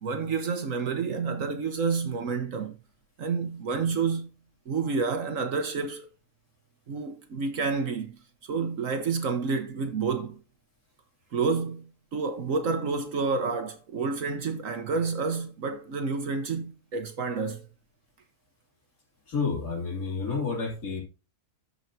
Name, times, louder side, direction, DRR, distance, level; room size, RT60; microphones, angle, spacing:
voice 1, 0.0-2.8 3.2-4.3 4.7-6.0 6.9-8.2 8.4-10.4 11.3-17.7, right 4 dB, 60° right, 1.4 m, -29 dB
voice 2, 19.3-21.0, left 4 dB, 65° left, 3.1 m, -30 dB
13.5 x 5.7 x 2.7 m
omnidirectional pair, 1.6 m